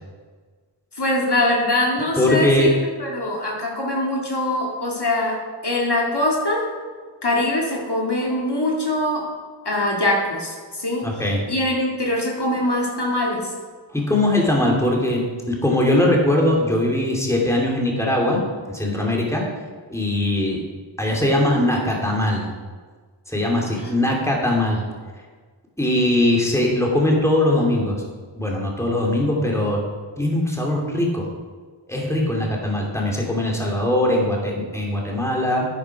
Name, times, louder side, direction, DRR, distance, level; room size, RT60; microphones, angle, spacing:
voice 1, 1.0-2.7 3.0-5.4 5.6-6.7 7.2-9.3 9.6-11.1 11.5-13.5 23.8-23.9, left 1 dB, 60° left, -2 dB, 2.4 m, -23 dB
voice 2, 2.2-2.7 11.0-11.4 13.9-15.2 15.5-18.4 18.7-19.4 19.9-20.6 21.0-22.5 23.3-24.8 25.8-27.9 28.4-29.8 30.2-31.3 31.9-35.7, left 1 dB, 5° left, -2 dB, 2.8 m, -20 dB
11.5 x 9.6 x 4.8 m, 1.5 s
wide cardioid pair, 45°, 46 cm